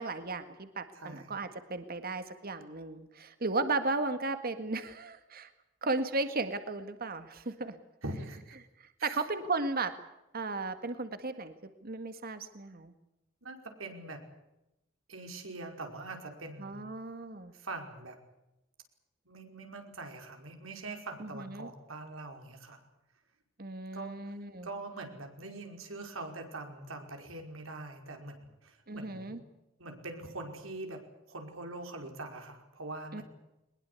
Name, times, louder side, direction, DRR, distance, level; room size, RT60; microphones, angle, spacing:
voice 1, 0.0-5.5 5.8-7.8 9.0-9.9 10.3-11.5 11.8-12.9 16.6-17.5 21.2-21.7 23.6-24.7 28.9-29.4 33.1-33.2, right 3 dB, 50° right, 10 dB, 1.8 m, -35 dB
voice 2, 0.9-1.4 8.0-8.6 9.0-9.2 13.4-14.2 15.1-16.9 17.5-18.2 19.3-22.8 23.9-24.2 24.6-29.4 29.8-33.2, right 2 dB, 85° right, 4 dB, 5.3 m, -43 dB
22.5 x 21.5 x 8.3 m, 0.91 s
head